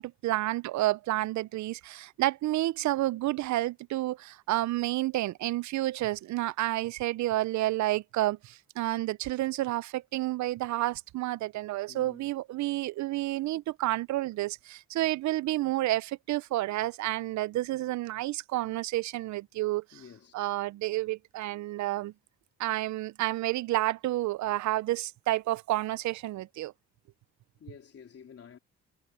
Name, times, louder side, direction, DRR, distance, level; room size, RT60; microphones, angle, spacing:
voice 1, 0.0-19.8 20.3-22.1 22.6-26.7, right 16 dB, 70° right, 0.5 m, -30 dB
voice 2, 11.9-12.3 13.2-13.5 19.9-20.4 27.6-28.6, left 7 dB, 50° left, 3.9 m, -51 dB
cardioid pair, 90°, 30 cm